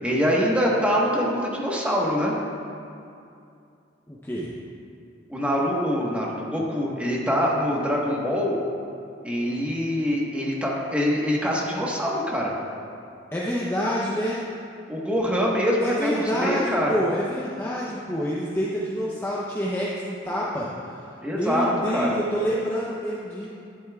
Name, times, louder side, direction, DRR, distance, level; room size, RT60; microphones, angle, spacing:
voice 1, 0.0-2.3 5.3-8.5 9.2-12.5 14.9-17.0 21.2-22.2, equal, 5° right, -4 dB, 1.2 m, -24 dB
voice 2, 4.1-4.5 13.3-14.4 15.8-21.0 21.3-23.5, equal, 10° left, -6 dB, 0.6 m, -27 dB
11.5 x 10.5 x 2.3 m, 2.5 s
head